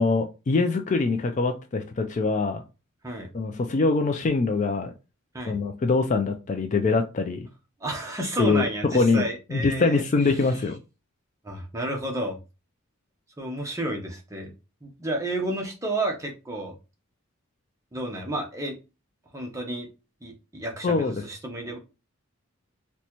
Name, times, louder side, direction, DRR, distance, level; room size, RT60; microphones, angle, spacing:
voice 1, 0.0-2.6 3.3-4.9 5.5-7.5 8.4-9.2 9.5-10.8 20.8-21.1, left 3 dB, 35° left, 6 dB, 0.3 m, -23 dB
voice 2, 7.8-10.0 10.3-10.5 11.4-12.4 13.4-14.5 14.8-16.7 17.9-18.7 19.3-19.9 20.2-21.8, right 1 dB, 15° right, 1 dB, 0.7 m, -31 dB
4.0 x 2.2 x 2.9 m, 0.29 s
head